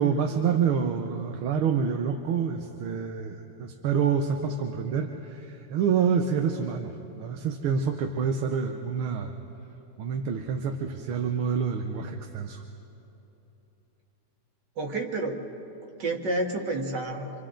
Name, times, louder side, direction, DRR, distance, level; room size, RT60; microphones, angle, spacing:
voice 1, 0.0-9.3 10.0-12.6, right 6 dB, 80° right, 4 dB, 1.8 m, -27 dB
voice 2, 14.8-15.4 16.0-17.3, right 2 dB, 55° right, 2 dB, 2.2 m, -29 dB
27.5 x 27.0 x 3.8 m, 2.9 s
omnidirectional pair, 2.3 m